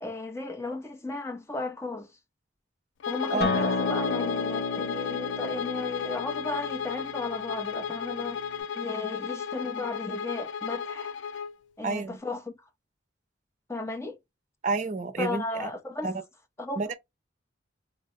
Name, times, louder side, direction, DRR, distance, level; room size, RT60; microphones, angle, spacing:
voice 1, 0.0-2.1 3.1-11.1 11.8-12.5 13.7-14.2 15.2-16.1 16.6-16.8, left 3 dB, 15° left, 0.5 m, -35 dB
Bowed string instrument, 3.0-11.5, left 7 dB, 90° left, 0.3 m, -34 dB
voice 2, 3.3-3.7 11.8-12.2 14.6-15.7 16.0-16.1 16.8-16.9, right 4 dB, 40° right, 0.6 m, -30 dB
Acoustic guitar, 3.4-8.6, left 3 dB, 60° left, 0.8 m, -32 dB
3.8 x 2.0 x 2.6 m
head